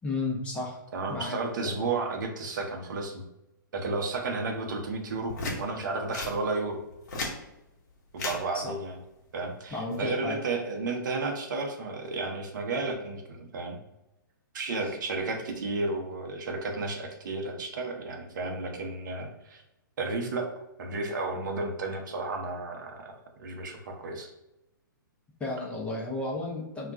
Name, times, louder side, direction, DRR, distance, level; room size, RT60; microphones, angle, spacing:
voice 1, 0.0-0.8 1.1-1.7 8.5-8.7 9.7-10.4 14.8-15.0 25.4-26.9, left 2 dB, 10° left, -2 dB, 0.6 m, -33 dB
voice 2, 0.9-3.2 3.7-6.8 8.1-9.0 9.3-13.8 14.5-19.6 20.0-20.5 20.8-24.3, right 3 dB, 60° right, 3 dB, 0.6 m, -32 dB
sound 1, 5.3-5.6 6.1-6.3 6.9-7.4 8.1-8.4 9.7-10.0, left 2 dB, 55° left, 0.9 m, -33 dB
2.3 x 2.2 x 3.6 m, 0.92 s
hypercardioid pair, 120°, 11 cm